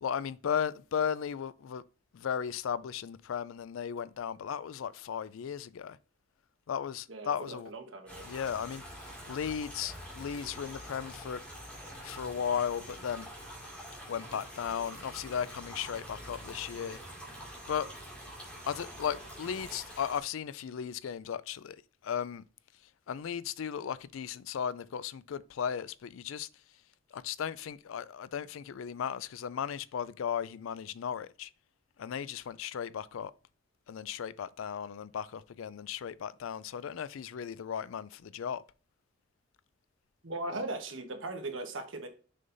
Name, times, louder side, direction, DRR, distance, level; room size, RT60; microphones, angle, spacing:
voice 1, 0.0-1.8 2.1-6.0 6.7-7.7 8.3-11.4 12.0-13.3 14.1-17.0 17.7-17.9 18.6-22.4 23.1-26.5 27.1-31.5 32.0-33.3 33.9-38.6, left 8 dB, 75° left, 0.4 m, -36 dB
voice 2, 7.1-8.2 40.2-42.1, right 2 dB, 70° right, 1.2 m, -38 dB
sound 1, 8.1-20.2, equal, 5° left, 2.1 m, -46 dB
6.5 x 5.5 x 2.6 m
head